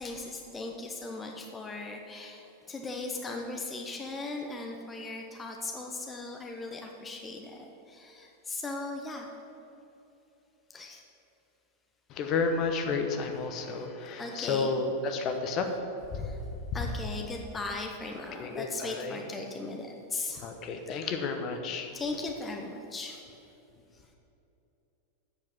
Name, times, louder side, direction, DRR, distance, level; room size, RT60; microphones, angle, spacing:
voice 1, 0.0-9.3 10.7-11.0 13.1-13.4 14.2-14.8 16.2-16.4 16.7-20.5 21.9-23.2 23.9-24.1, left 3 dB, 15° left, 2 dB, 0.9 m, -38 dB
voice 2, 12.1-15.7 16.1-16.3 18.4-19.2 20.4-21.9, left 4 dB, 35° left, 5 dB, 1.0 m, -31 dB
8.4 x 7.0 x 7.5 m, 2.9 s
figure-of-eight pair, 90°, 0 cm